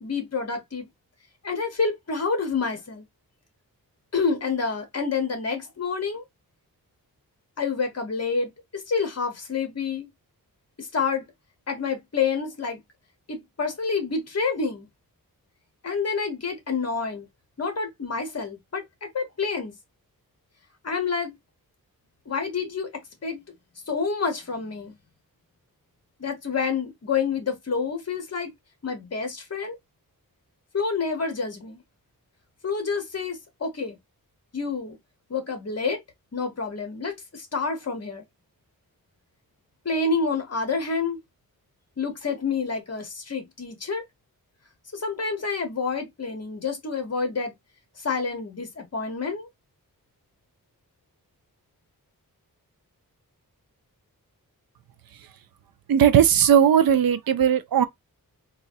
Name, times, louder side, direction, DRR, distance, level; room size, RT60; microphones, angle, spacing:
voice 1, 0.0-0.9 1.4-3.1 4.1-6.2 7.6-10.1 10.8-11.2 11.7-12.8 13.3-14.9 15.8-17.3 17.6-19.7 20.8-21.3 22.3-23.4 23.9-24.9 26.2-28.5 28.8-29.8 30.7-31.8 32.6-34.0 34.5-35.0 35.3-36.0 36.3-38.2 39.8-41.2 42.0-44.0 44.9-47.5 48.0-49.5, left 5 dB, 45° left, 1.1 m, -28 dB
voice 2, 55.9-57.9, right 9 dB, 75° right, 0.5 m, -18 dB
3.9 x 2.4 x 2.6 m
wide cardioid pair, 170°, 36 cm